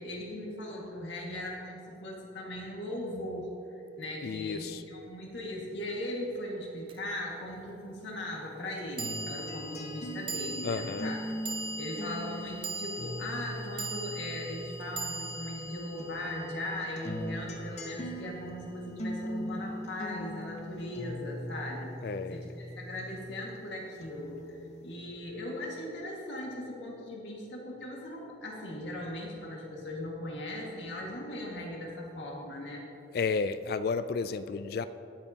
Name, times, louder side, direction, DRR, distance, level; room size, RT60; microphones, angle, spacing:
voice 1, 0.0-11.2 11.8-32.8, left 1 dB, 70° left, -2 dB, 1.9 m, -39 dB
voice 2, 4.2-4.8 10.6-11.1 22.0-22.4 33.1-34.8, left 4 dB, 50° left, 12 dB, 0.3 m, -32 dB
sound 1, 6.9-7.0 9.0-17.4, right 2 dB, 25° right, 0.6 m, -40 dB
sound 2, 9.0-15.6 16.0-23.6 24.0-25.0, left 1 dB, 35° left, 0.8 m, -41 dB
20.5 x 6.8 x 2.9 m, 3.0 s
head